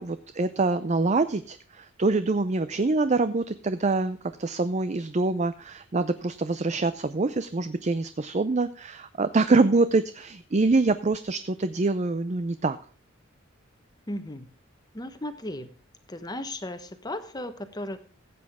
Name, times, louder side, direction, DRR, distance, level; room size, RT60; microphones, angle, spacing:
voice 1, 0.0-12.8, right 3 dB, 35° right, 12 dB, 0.5 m, -25 dB
voice 2, 14.1-14.5 14.9-15.7 16.1-18.0, left 1 dB, 20° left, 10 dB, 1.1 m, -35 dB
15.0 x 8.5 x 3.6 m, 0.42 s
head